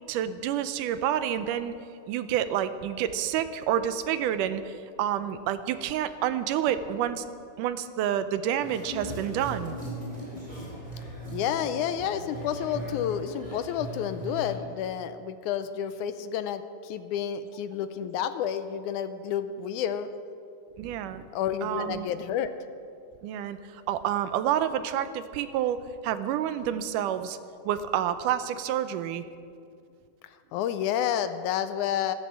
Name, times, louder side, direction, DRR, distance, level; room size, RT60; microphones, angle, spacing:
voice 1, 0.1-1.8 2.1-7.2 7.6-9.8 20.8-21.3 21.6-22.1 23.2-27.4 27.6-29.2, right 10 dB, 80° right, 12 dB, 2.2 m, -29 dB
sound 1, 8.6-14.5, right 1 dB, 10° right, 4.1 m, -38 dB
voice 2, 11.3-20.1 21.3-22.5 30.5-32.1, left 9 dB, 80° left, 11 dB, 2.0 m, -30 dB
14.0 x 13.5 x 7.5 m, 2.4 s
omnidirectional pair, 3.7 m